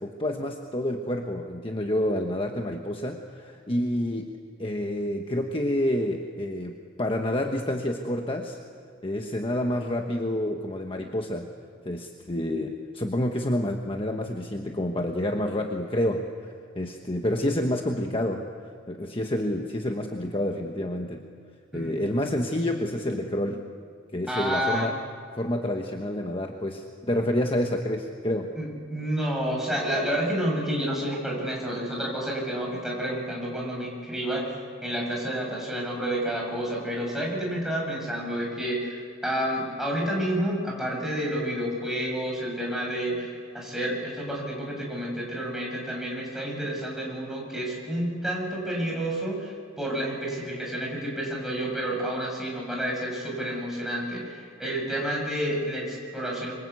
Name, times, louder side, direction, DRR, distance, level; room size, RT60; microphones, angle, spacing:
voice 1, 0.0-4.3 4.6-8.6 9.0-11.5 11.8-18.5 18.9-21.2 21.7-23.6 24.1-24.9 25.4-28.5, left 1 dB, 25° left, 3 dB, 1.3 m, -28 dB
voice 2, 21.7-22.1 24.3-24.9 28.5-34.4 34.8-56.5, right 1 dB, ahead, -2 dB, 7.1 m, -30 dB
26.5 x 24.5 x 8.3 m, 2.2 s
head